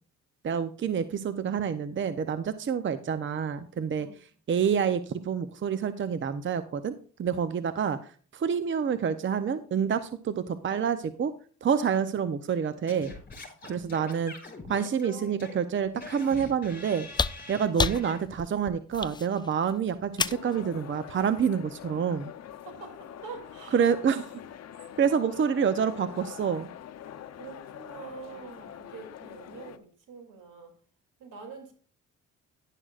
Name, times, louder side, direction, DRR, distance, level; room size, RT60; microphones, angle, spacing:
voice 1, 0.4-4.1 4.5-11.3 11.6-13.1 13.6-14.3 14.7-17.1 17.5-22.3 23.7-24.2 25.0-26.7, right 7 dB, 40° right, 11 dB, 0.7 m, -28 dB
Singing / Scratching (performance technique), 12.9-18.2, left 3 dB, 30° left, 5.5 m, -44 dB
sound 1, 17.1-20.6 21.9-22.0, left 4 dB, 15° left, 0.3 m, -31 dB
sound 2, 20.2-29.8, left 10 dB, 60° left, 0.8 m, -45 dB
voice 2, 22.7-23.9 25.1-25.2 27.3-30.7 31.2-31.7, right 5 dB, 80° right, 4 dB, 2.9 m, -45 dB
11.0 x 11.0 x 2.5 m, 0.42 s
cardioid pair, 90°, 30 cm